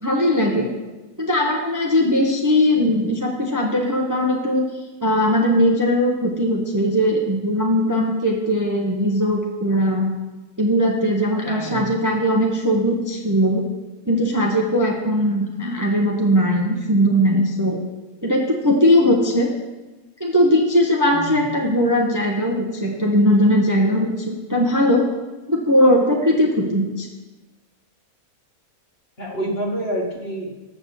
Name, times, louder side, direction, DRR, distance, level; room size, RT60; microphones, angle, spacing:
voice 1, 0.0-0.7 1.2-4.6 5.0-10.1 10.6-13.6 14.1-17.8 18.2-19.5 20.2-25.0 25.5-27.1, equal, 15° right, 0 dB, 0.8 m, -19 dB
voice 2, 11.4-12.0 21.1-21.4 29.2-30.7, right 1 dB, 45° left, -1 dB, 1.7 m, -28 dB
7.9 x 6.2 x 6.8 m, 1.1 s
omnidirectional pair, 1.5 m